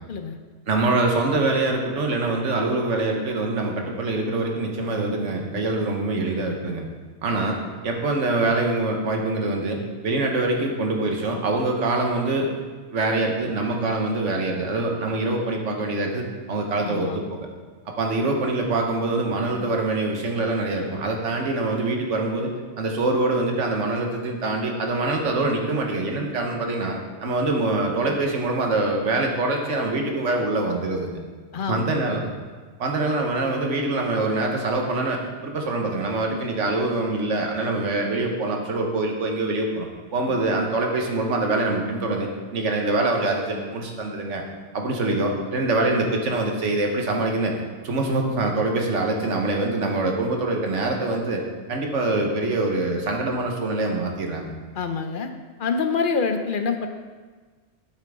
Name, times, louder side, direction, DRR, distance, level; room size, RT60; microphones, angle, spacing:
voice 1, 0.7-6.9 7.2-7.6 7.8-12.5 12.9-17.5 18.0-22.5 22.8-31.2 31.7-32.3 32.8-44.4 44.7-47.5 47.8-51.4 51.7-54.5, right 2 dB, 75° right, 2 dB, 1.5 m, -24 dB
voice 2, 16.8-17.2 31.5-32.1 40.3-40.4 54.7-55.3 55.6-56.9, left 5 dB, 55° left, 7 dB, 0.7 m, -26 dB
9.0 x 7.7 x 3.6 m, 1.4 s
omnidirectional pair, 1.2 m